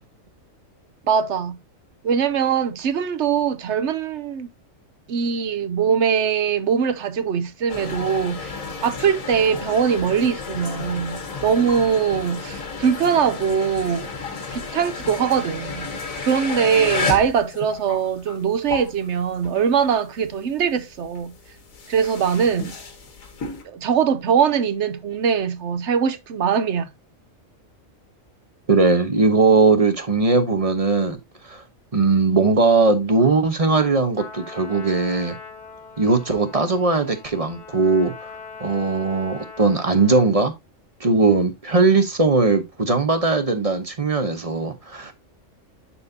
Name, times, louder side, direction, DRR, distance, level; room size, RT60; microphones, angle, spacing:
voice 1, 1.1-1.6 2.0-4.5 5.1-14.1 14.5-15.9 16.2-21.3 21.9-22.7 23.6-26.9, right 7 dB, 65° right, 1.0 m, -22 dB
sound 1, 7.7-20.0 20.3-23.6, left 4 dB, 80° left, 1.8 m, -32 dB
voice 2, 28.7-31.2 31.5-31.6 31.9-35.4 36.0-38.1 38.6-40.5 41.0-45.1, right 3 dB, 30° right, 1.0 m, -19 dB
Trumpet, 34.2-40.4, left 5 dB, 55° left, 2.0 m, -41 dB
10.5 x 4.5 x 2.7 m
omnidirectional pair, 1.4 m